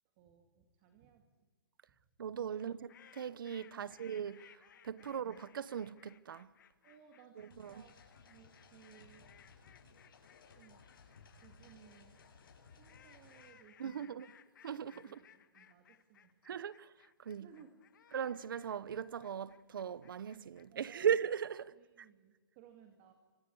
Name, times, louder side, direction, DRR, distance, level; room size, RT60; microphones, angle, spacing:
voice 1, 0.2-1.5 1.9-2.0 2.5-2.8 3.7-4.0 5.0-5.2 6.8-7.9 8.2-9.4 10.5-10.8 11.1-12.1 12.8-14.3 14.7-16.4 17.4-18.1 20.7-21.2 21.7-23.1, right 8 dB, 30° right, 2.2 m, -62 dB
voice 2, 2.2-2.9 3.2-6.5 7.4-7.8 13.8-14.3 14.6-15.2 16.4-16.9 17.2-17.5 18.1-22.1, right 8 dB, 70° right, 0.9 m, -38 dB
sound 1, 2.5-21.6, left 9 dB, 60° left, 1.6 m, -64 dB
sound 2, 7.5-13.5, left 5 dB, 75° left, 7.5 m, -61 dB
29.5 x 25.5 x 4.8 m
hypercardioid pair, 170°, 12 cm